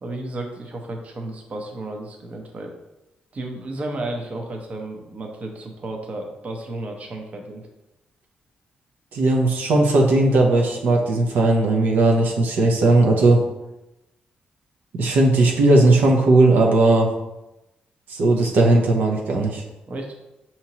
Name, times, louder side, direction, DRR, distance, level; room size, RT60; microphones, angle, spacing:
voice 1, 0.0-2.7 3.3-7.7 19.9-20.1, right 2 dB, 45° right, 2 dB, 0.7 m, -33 dB
voice 2, 9.1-13.4 14.9-17.1 18.1-19.6, right 2 dB, 80° right, 0 dB, 0.7 m, -17 dB
5.6 x 2.9 x 2.9 m, 0.94 s
cardioid pair, 85°, 3 cm